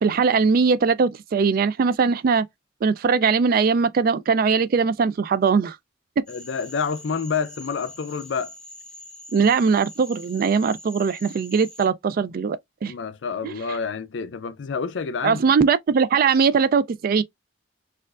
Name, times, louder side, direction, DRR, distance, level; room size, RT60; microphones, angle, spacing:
voice 1, 0.0-2.4 2.8-5.8 9.3-12.9 13.4-13.5 15.2-17.2, right 5 dB, 50° right, 0.3 m, -20 dB
voice 2, 6.3-8.5 12.9-15.4, left 5 dB, 70° left, 0.5 m, -28 dB
Cricket / Frog, 6.3-11.9, left 1 dB, 5° left, 0.7 m, -44 dB
4.4 x 2.4 x 2.4 m
head